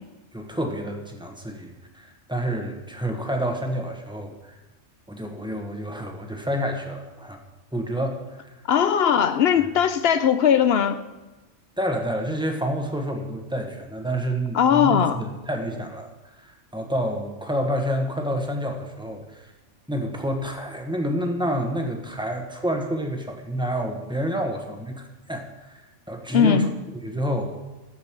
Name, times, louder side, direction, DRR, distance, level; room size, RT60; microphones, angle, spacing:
voice 1, 0.3-4.6 5.1-7.4 7.7-8.5 11.8-16.1 16.4-19.5 19.9-25.8 26.1-26.7 27.0-27.6, equal, 5° right, 2 dB, 1.2 m, -28 dB
voice 2, 8.7-11.0 14.5-15.2 26.3-26.7, left 8 dB, 65° left, 11 dB, 0.8 m, -19 dB
12.0 x 5.2 x 7.5 m, 1.1 s
omnidirectional pair, 1.2 m